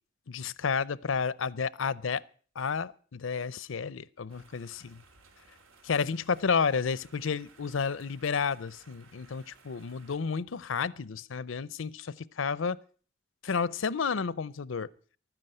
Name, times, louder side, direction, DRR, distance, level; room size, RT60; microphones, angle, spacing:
voice 1, 0.3-2.2 2.6-5.0 5.8-12.8 13.4-14.9, left 5 dB, 75° left, 0.6 m, -31 dB
sound 1, 4.3-10.2, right 4 dB, 85° right, 2.2 m, -59 dB
13.0 x 9.8 x 7.7 m
head